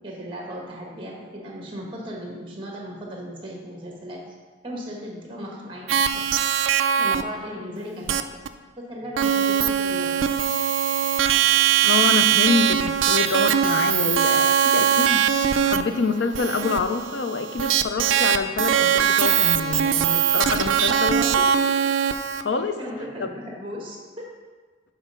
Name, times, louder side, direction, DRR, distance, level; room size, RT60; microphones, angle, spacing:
voice 1, 0.0-4.2 4.6-6.3 7.0-8.4 8.8-10.2 20.6-21.8 22.8-24.3, equal, 25° right, -1 dB, 1.3 m, -37 dB
sound 1, 5.9-7.2 8.1-8.2 8.5-8.6 9.2-22.4, right 8 dB, 80° right, 0.3 m, -21 dB
voice 2, 11.8-15.2 15.6-21.2 22.4-22.8, left 4 dB, 65° left, 8 dB, 0.5 m, -26 dB
6.1 x 4.1 x 5.3 m, 1.4 s
head